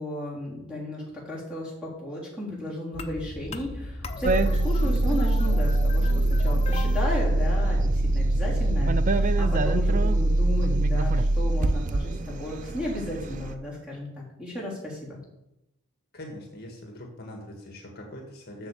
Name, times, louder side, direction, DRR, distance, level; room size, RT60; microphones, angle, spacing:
voice 1, 0.0-15.2, left 1 dB, 5° right, -5 dB, 3.5 m, -34 dB
sound 1, 2.9-9.0, left 1 dB, 30° left, 0.7 m, -37 dB
sound 2, 4.2-13.5, right 2 dB, 35° right, 0.4 m, -23 dB
voice 2, 16.1-18.7, left 1 dB, 45° left, 1 dB, 1.6 m, -42 dB
8.1 x 6.8 x 7.0 m, 0.88 s
head